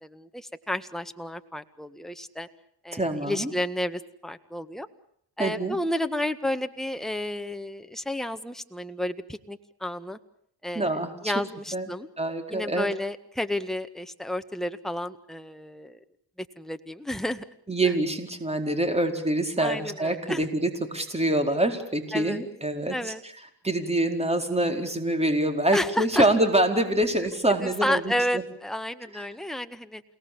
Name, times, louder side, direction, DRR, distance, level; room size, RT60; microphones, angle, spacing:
voice 1, 0.0-2.5 2.8-4.9 5.4-10.2 10.6-11.0 11.2-12.1 12.5-16.0 16.6-17.4 17.8-17.9 19.6-20.5 22.1-22.4 22.9-23.2 25.7-26.3 27.5-30.0, left 1 dB, ahead, 8 dB, 1.8 m, -31 dB
voice 2, 2.9-3.5 5.4-5.8 10.7-11.3 11.7-11.9 12.2-12.9 17.7-23.1 23.6-28.4 29.1-29.2, right 1 dB, 15° right, 6 dB, 4.7 m, -25 dB
29.0 x 18.5 x 8.8 m, 0.69 s
cardioid pair, 75°, 43 cm